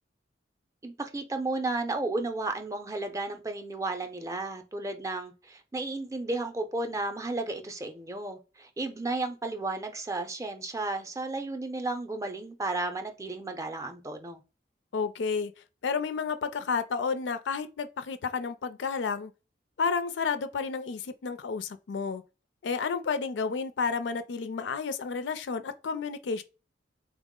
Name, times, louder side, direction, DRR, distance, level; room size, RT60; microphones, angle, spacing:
voice 1, 0.8-14.4, right 2 dB, 15° right, 0.4 m, -33 dB
voice 2, 14.9-15.5 15.8-19.3 19.8-22.2 22.6-26.4, left 5 dB, 80° left, 0.4 m, -31 dB
3.7 x 2.0 x 3.6 m
head